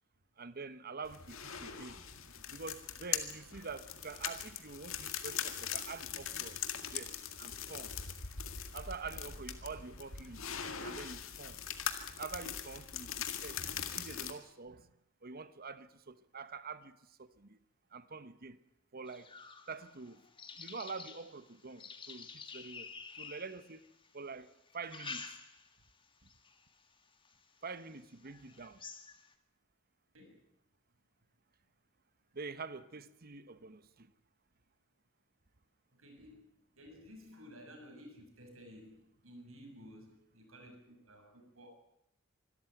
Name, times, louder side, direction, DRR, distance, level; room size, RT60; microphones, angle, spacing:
voice 1, 0.4-2.0 2.5-6.6 6.9-8.0 8.7-10.5 10.8-11.6 12.2-13.6 13.9-14.9 15.2-17.6 17.9-18.6 18.9-19.3 19.7-20.2 20.6-22.9 23.2-23.9 24.1-24.5 24.7-25.3 27.6-28.8 32.3-34.1, right 4 dB, 45° right, 1.1 m, -46 dB
sound 1, 1.0-14.3, left 8 dB, 75° left, 2.0 m, -41 dB
sound 2, 19.1-24.1 24.7-25.8 26.3-26.6 27.2-27.3 27.8-27.9 28.3-29.3, left 5 dB, 25° left, 1.8 m, -49 dB
voice 2, 35.9-36.5 36.7-41.7, equal, 90° right, 6.6 m, -54 dB
25.0 x 13.5 x 9.2 m
head